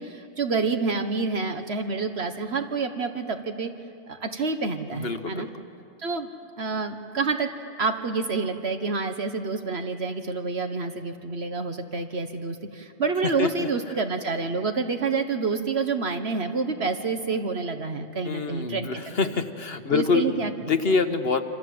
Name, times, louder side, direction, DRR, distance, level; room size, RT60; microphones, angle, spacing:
voice 1, 0.0-3.7 4.1-5.5 6.0-6.3 6.6-7.5 7.8-19.4 19.9-20.5 20.9-21.0, right 4 dB, 65° right, 6 dB, 1.5 m, -28 dB
voice 2, 4.9-5.5 13.4-13.7 18.2-20.3 20.7-21.4, left 4 dB, 55° left, 7 dB, 1.5 m, -25 dB
27.5 x 27.0 x 7.8 m, 2.5 s
omnidirectional pair, 1.2 m